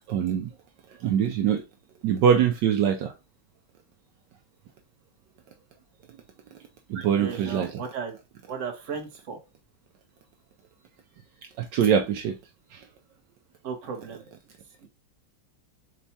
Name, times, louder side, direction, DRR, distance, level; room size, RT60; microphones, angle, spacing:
voice 1, 0.1-0.5 1.0-1.6 2.0-3.1 6.9-7.7 11.6-12.4 12.7-12.8, right 8 dB, 75° right, 1.2 m, -23 dB
voice 2, 6.9-8.2 8.5-9.4 13.6-14.3 14.8-14.9, right 6 dB, 45° right, 1.3 m, -35 dB
4.6 x 4.0 x 2.7 m
omnidirectional pair, 2.0 m